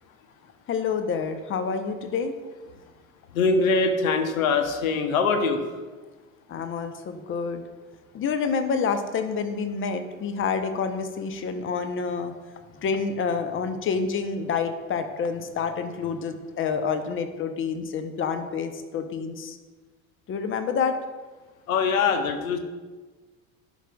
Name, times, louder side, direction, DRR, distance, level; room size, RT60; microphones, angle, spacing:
voice 1, 0.7-2.3 6.5-7.6 8.1-12.3 12.8-19.6 20.3-21.0, left 5 dB, 30° left, 9 dB, 0.8 m, -28 dB
voice 2, 3.3-5.7 21.7-22.6, left 4 dB, 70° left, 7 dB, 0.9 m, -23 dB
11.0 x 5.6 x 2.3 m, 1.3 s
figure-of-eight pair, 65°, 43 cm